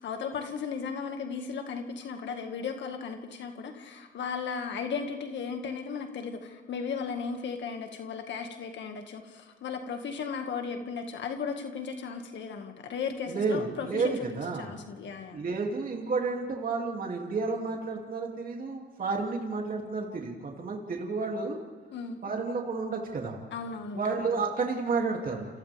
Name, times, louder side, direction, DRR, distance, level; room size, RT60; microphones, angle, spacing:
voice 1, 0.0-15.4 21.9-22.2 23.5-24.3, left 5 dB, 65° left, 4 dB, 2.0 m, -36 dB
voice 2, 13.3-14.7 15.3-21.6 22.2-23.4 23.9-25.5, right 4 dB, 45° right, 0 dB, 2.7 m, -31 dB
29.5 x 27.5 x 3.6 m, 1.3 s
cardioid pair, 90°, 20 cm